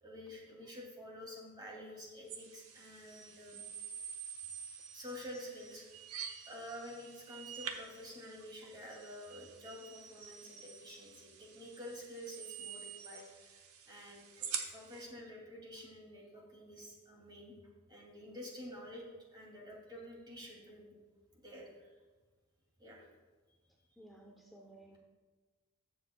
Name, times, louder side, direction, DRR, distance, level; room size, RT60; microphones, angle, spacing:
voice 1, 0.0-3.6 4.9-17.5 17.9-19.0 19.3-20.9 21.3-21.9 22.8-23.1, left 1 dB, 20° right, -2 dB, 2.5 m, -49 dB
sound 1, 2.3-15.0, right 7 dB, 80° right, 1.0 m, -47 dB
voice 2, 24.0-25.0, right 1 dB, ahead, -1 dB, 0.7 m, -56 dB
21.0 x 7.1 x 2.3 m, 1.3 s
head